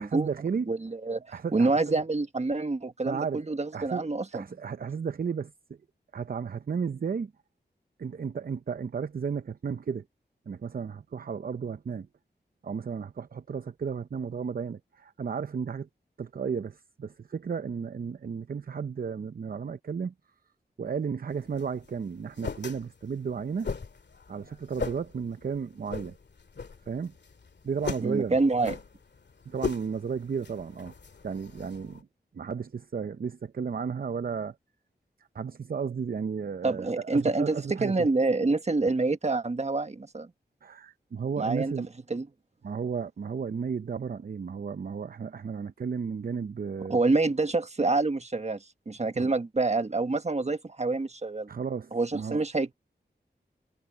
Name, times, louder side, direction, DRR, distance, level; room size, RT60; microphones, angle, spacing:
voice 1, 0.0-0.7 1.3-2.0 3.1-5.8 6.1-7.3 8.0-10.0 10.5-12.1 12.6-15.9 16.2-20.1 20.8-23.7 24.3-26.1 26.9-27.1 27.6-28.4 29.5-30.9 31.2-32.1 32.3-34.6 35.3-38.1 40.6-41.9 42.6-47.0 49.1-49.3 51.5-52.4, right 6 dB, 55° right, 0.6 m, -33 dB
voice 2, 0.7-1.2 1.5-4.4 28.0-28.8 36.6-40.3 41.4-41.7 42.1-42.3 46.9-51.5 51.9-52.7, right 3 dB, 40° right, 1.4 m, -27 dB
sound 1, 21.3-32.0, left 5 dB, 75° left, 2.1 m, -39 dB
wide cardioid pair, 65°, 18 cm